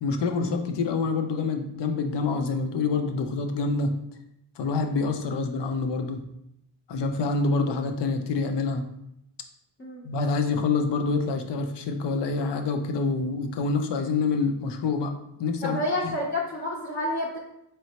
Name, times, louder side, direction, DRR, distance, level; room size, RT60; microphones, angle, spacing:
voice 1, 0.0-3.9 4.6-6.2 6.9-8.8 10.0-15.1 15.4-16.1, left 4 dB, 60° left, 5 dB, 0.6 m, -26 dB
voice 2, 15.6-17.4, left 1 dB, 25° left, -6 dB, 0.7 m, -29 dB
3.8 x 3.2 x 2.9 m, 0.81 s
cardioid pair, 80°, 47 cm